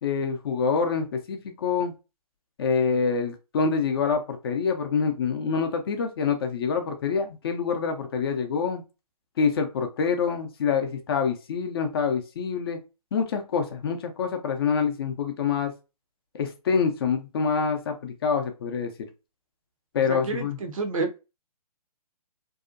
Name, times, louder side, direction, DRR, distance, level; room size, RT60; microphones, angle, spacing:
voice 1, 0.0-1.9 2.6-8.8 9.4-12.8 13.1-15.7 16.3-19.1 19.9-20.6, left 5 dB, 40° left, 0.5 m, -26 dB
voice 2, 20.1-21.2, right 3 dB, 60° right, 0.6 m, -30 dB
2.7 x 2.1 x 2.4 m
figure-of-eight pair, 140°, 20 cm